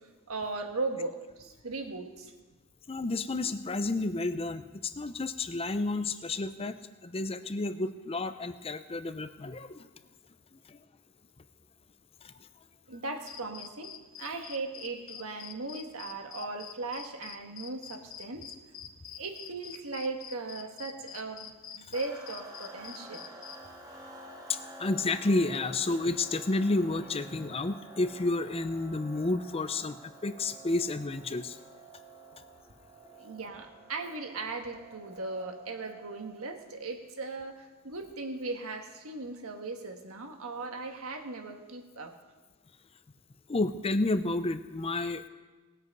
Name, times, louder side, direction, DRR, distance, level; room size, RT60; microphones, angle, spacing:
voice 1, 0.3-2.3 12.9-18.5 19.2-23.3 33.2-42.1, right 3 dB, 70° right, 4 dB, 1.5 m, -38 dB
voice 2, 2.9-6.8 7.0-9.9 10.7-10.8 12.2-12.3 24.5-31.6 43.5-45.3, left 2 dB, 25° left, 11 dB, 0.6 m, -31 dB
sound 1, 13.3-23.6, left 9 dB, 60° left, 0.8 m, -45 dB
sound 2, 21.9-36.5, right 2 dB, 15° right, 1.4 m, -50 dB
19.0 x 8.2 x 5.3 m, 1.2 s
head